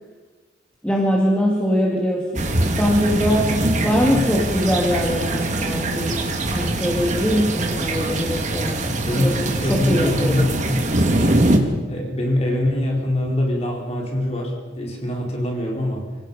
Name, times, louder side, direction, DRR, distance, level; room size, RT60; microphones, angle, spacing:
voice 1, 0.8-3.5 3.8-6.2 6.5-8.8 9.2-10.6, equal, 5° left, -3 dB, 2.4 m, -22 dB
sound 1, 2.3-11.6, right 1 dB, 40° right, 2.2 m, -23 dB
voice 2, 8.8-10.8 11.5-16.1, left 1 dB, 35° left, -1 dB, 4.2 m, -24 dB
27.5 x 17.5 x 5.5 m, 1.4 s
head